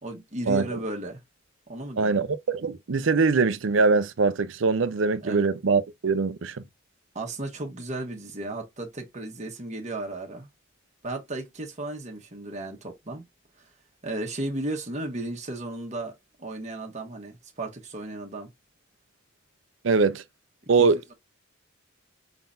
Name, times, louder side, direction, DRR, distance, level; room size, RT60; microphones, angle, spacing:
voice 1, 0.0-1.2 1.7-2.2 5.2-5.4 7.1-10.5 11.0-13.2 13.6-13.7 14.0-18.5 20.8-21.1, right 2 dB, 35° right, 1.3 m, -35 dB
voice 2, 2.0-6.6 19.8-20.2 20.7-21.1, right 4 dB, 70° right, 0.6 m, -23 dB
5.3 x 3.9 x 2.5 m
head